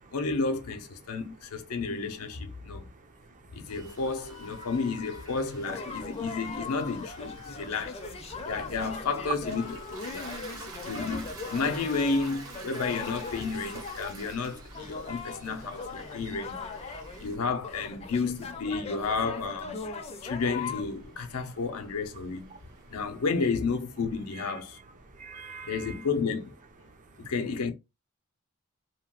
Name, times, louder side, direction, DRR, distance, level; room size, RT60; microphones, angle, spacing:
voice 1, 0.1-2.9 3.5-8.0 8.5-10.3 10.8-22.5 22.9-24.8 25.6-26.6 27.2-27.7, left 4 dB, 90° left, 0.6 m, -32 dB
voice 2, 2.5-3.8 4.6-4.7 7.4-7.7 8.3-8.5 10.1-10.9 15.0-15.1 16.0-16.2 16.9-17.3 20.0-20.3 22.5-23.0 24.3-26.1 26.9-27.3, right 4 dB, 35° right, 0.4 m, -50 dB
Rain, 3.7-17.4, right 1 dB, 85° right, 0.9 m, -51 dB
sound 1, 5.7-20.8, left 4 dB, 30° left, 0.4 m, -40 dB
Toilet flush, 9.1-23.1, right 2 dB, 60° right, 1.0 m, -49 dB
2.8 x 2.3 x 2.8 m
head